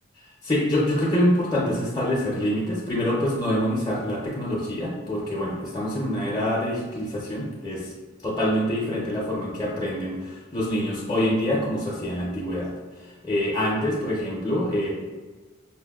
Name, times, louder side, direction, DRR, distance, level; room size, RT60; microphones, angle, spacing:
voice 1, 0.4-7.9 8.2-12.7 13.2-14.9, left 1 dB, 20° left, -6 dB, 0.5 m, -25 dB
5.5 x 2.1 x 2.3 m, 1.3 s
head